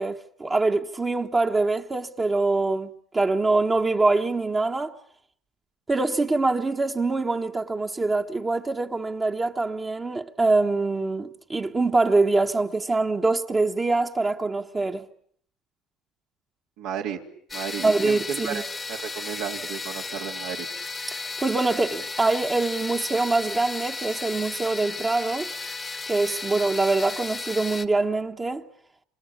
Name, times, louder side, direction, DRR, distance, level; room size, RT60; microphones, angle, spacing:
voice 1, 0.0-4.9 5.9-15.1 17.8-18.6 21.1-25.5 26.1-28.6, right 3 dB, 20° right, 1.2 m, -24 dB
voice 2, 16.8-17.2 17.5-20.7, right 8 dB, 80° right, 3.1 m, -33 dB
sound 1, 17.5-27.8, left 3 dB, 20° left, 1.1 m, -34 dB
26.5 x 26.5 x 8.3 m
cardioid pair, 110°, 0 cm